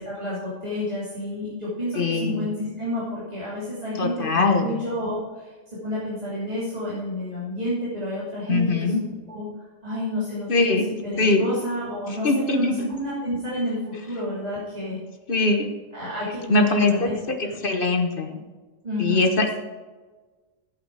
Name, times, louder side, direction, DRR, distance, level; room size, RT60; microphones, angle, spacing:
voice 1, 0.0-5.5 5.8-8.9 9.3-10.8 11.0-15.0 15.9-17.1 17.4-17.6 18.8-19.3, left 1 dB, 30° right, -9 dB, 3.0 m, -30 dB
voice 2, 1.9-2.5 4.0-4.7 8.5-9.0 10.5-10.9 11.2-11.4 12.1-12.7 15.3-15.7 16.5-17.1 17.4-18.4 19.0-19.5, left 3 dB, 40° left, 4 dB, 1.3 m, -22 dB
11.0 x 8.6 x 4.8 m, 1.3 s
omnidirectional pair, 1.4 m